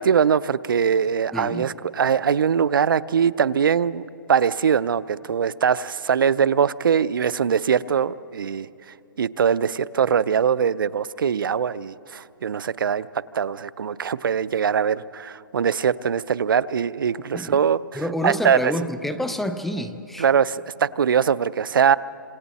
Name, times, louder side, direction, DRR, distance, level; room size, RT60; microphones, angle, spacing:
voice 1, 0.0-8.7 9.2-13.1 13.3-18.6 20.2-22.0, right 7 dB, 90° right, 18 dB, 0.5 m, -22 dB
voice 2, 1.3-1.7 17.3-17.6 17.9-20.3, equal, ahead, 8 dB, 0.4 m, -28 dB
26.5 x 26.5 x 4.1 m, 2.7 s
hypercardioid pair, 165°, 11 cm